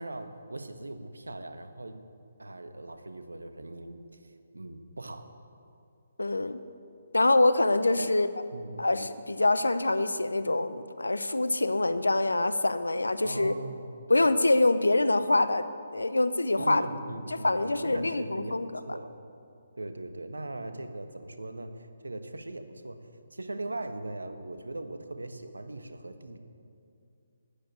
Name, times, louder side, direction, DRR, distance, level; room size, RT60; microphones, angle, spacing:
voice 1, 0.0-2.0 2.4-4.0 4.5-5.3 8.0-8.1 8.5-8.9 13.2-13.9 16.5-18.6 18.9-19.1 19.8-23.0 23.3-26.4, right 2 dB, 85° right, 8 dB, 1.3 m, -39 dB
voice 2, 6.2-6.6 7.1-8.3 8.8-13.5 14.1-15.7 15.9-16.9 17.3-18.7, left 2 dB, 85° left, 12 dB, 0.7 m, -25 dB
13.0 x 10.5 x 9.4 m, 2.5 s
figure-of-eight pair, 145°, 0 cm